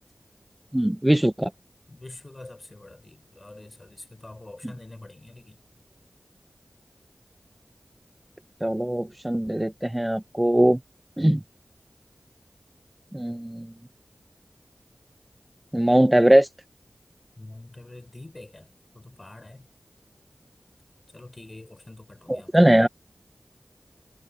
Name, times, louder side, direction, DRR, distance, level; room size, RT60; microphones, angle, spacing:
voice 1, 0.7-1.5 8.6-10.8 11.2-11.4 13.1-13.7 15.7-16.5 22.3-22.9, right 1 dB, 15° right, 1.3 m, -20 dB
voice 2, 1.9-5.6 17.4-19.7 21.1-22.7, left 2 dB, 35° left, 7.6 m, -45 dB
wide cardioid pair, 55°, 0 cm